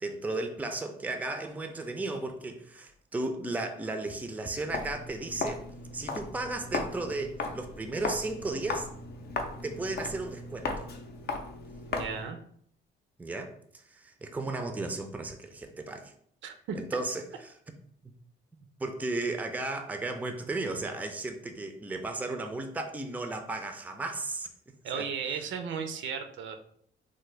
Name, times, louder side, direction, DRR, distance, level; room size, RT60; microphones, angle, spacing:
voice 1, 0.0-5.6 5.9-8.9 9.6-10.9 13.2-13.5 13.9-16.1 16.7-17.2 18.8-24.5 24.9-25.0, right 2 dB, 10° right, 5 dB, 0.4 m, -34 dB
Walk footsteps, 4.7-12.3, left 3 dB, 55° left, 0.5 m, -36 dB
voice 2, 11.9-12.4 16.4-16.8 24.8-26.6, right 6 dB, 70° right, 6 dB, 0.5 m, -35 dB
3.4 x 2.1 x 3.2 m, 0.64 s
cardioid pair, 90°, 20 cm